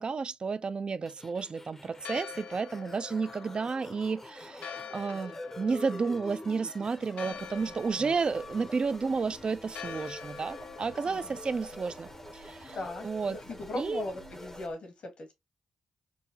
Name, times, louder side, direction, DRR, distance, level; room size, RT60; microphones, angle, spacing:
voice 1, 0.0-12.8 13.0-13.4 13.8-14.0, right 4 dB, 45° right, 0.3 m, -32 dB
sound 1, 1.1-14.7, left 1 dB, 15° left, 0.6 m, -47 dB
Church bell, 1.9-13.4, left 7 dB, 80° left, 0.4 m, -46 dB
sound 2, 7.3-14.7, right 4 dB, 85° right, 1.0 m, -52 dB
voice 2, 11.0-11.4 12.7-15.3, left 2 dB, 65° left, 1.4 m, -39 dB
3.8 x 2.1 x 2.7 m
supercardioid pair, 50°, 2 cm